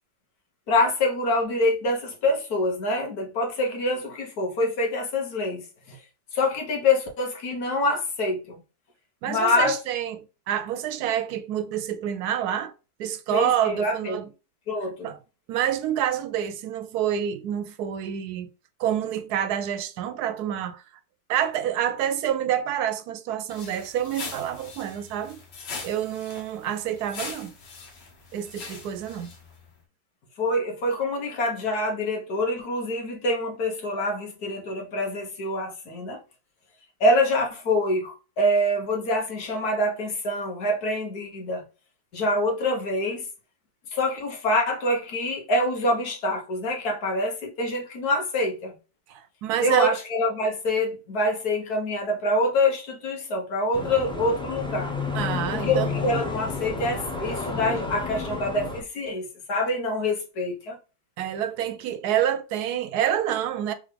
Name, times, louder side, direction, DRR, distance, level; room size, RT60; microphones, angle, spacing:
voice 1, 0.7-6.0 6.3-8.6 9.3-9.8 13.3-14.2 14.7-15.1 30.4-36.2 37.0-41.6 42.1-43.3 43.9-48.7 49.6-54.9 55.5-60.8, left 1 dB, 65° left, 1.8 m, -25 dB
voice 2, 9.2-12.7 13.0-14.3 15.0-15.2 15.5-18.5 18.8-20.8 21.3-25.4 25.8-27.5 28.3-29.3 49.1-49.9 55.1-55.9 61.2-63.7, right 10 dB, 70° right, 1.1 m, -27 dB
sound 1, 23.5-29.7, left 4 dB, 85° left, 1.8 m, -41 dB
sound 2, 53.7-58.8, left 4 dB, 5° left, 0.4 m, -31 dB
3.7 x 3.5 x 3.3 m
omnidirectional pair, 1.8 m